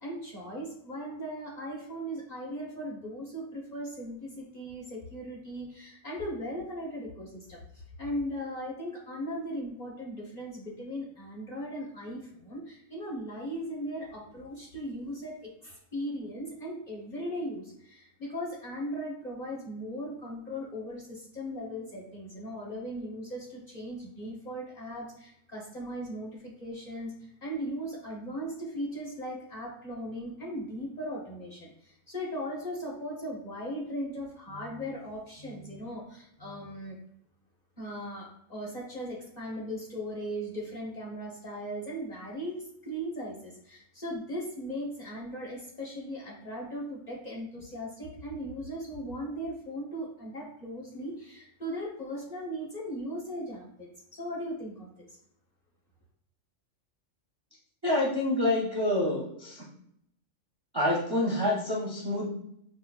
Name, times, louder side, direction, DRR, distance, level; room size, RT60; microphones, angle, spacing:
voice 1, 0.0-7.6 8.0-37.0 37.8-55.1, equal, 35° left, -3 dB, 0.9 m, -38 dB
voice 2, 57.8-59.6 60.7-62.3, left 1 dB, 30° right, -4 dB, 0.5 m, -27 dB
5.3 x 2.1 x 2.3 m, 0.72 s
omnidirectional pair, 1.3 m